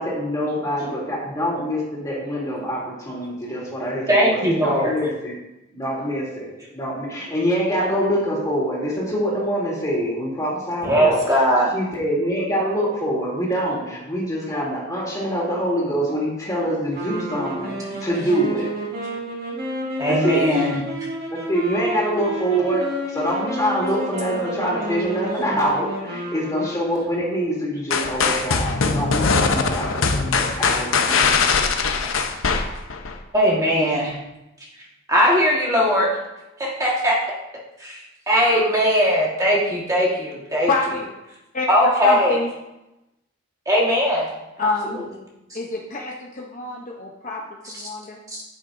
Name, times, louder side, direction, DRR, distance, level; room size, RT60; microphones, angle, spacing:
voice 1, 0.0-5.3 5.7-11.2 11.7-18.7 20.1-20.5 21.3-31.4, equal, 15° left, -5 dB, 2.8 m, -25 dB
voice 2, 4.1-5.0 10.8-11.7 17.9-18.0 20.0-20.8 33.3-34.2 35.1-36.1 36.6-37.2 37.8-40.7 41.7-42.4 43.6-44.3 44.6-44.9 45.5-45.6 47.6-47.7 48.3-48.4, equal, 15° right, -4 dB, 1.5 m, -19 dB
sound 1, 16.9-27.3, equal, 50° right, 1.9 m, -30 dB
sound 2, 27.9-33.2, left 4 dB, 75° left, 0.8 m, -21 dB
voice 3, 40.7-41.0 41.5-41.7 42.0-42.5 44.6-45.1 45.5-48.2, left 3 dB, 40° left, -1 dB, 0.7 m, -27 dB
9.8 x 8.5 x 2.6 m, 0.95 s
head